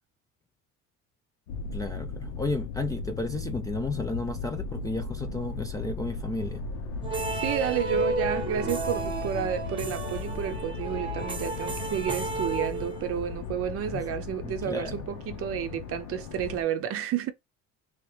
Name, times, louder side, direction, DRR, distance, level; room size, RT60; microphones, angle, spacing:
sound 1, 1.5-16.6, left 4 dB, 85° left, 1.0 m, -36 dB
voice 1, 1.7-6.6 13.9-14.1 14.4-14.9, left 2 dB, 10° left, 0.3 m, -33 dB
sound 2, 7.0-13.3, right 2 dB, 15° right, 0.9 m, -33 dB
voice 2, 7.3-17.3, right 9 dB, 45° right, 0.6 m, -31 dB
3.2 x 2.9 x 3.2 m
cardioid pair, 125°, 32 cm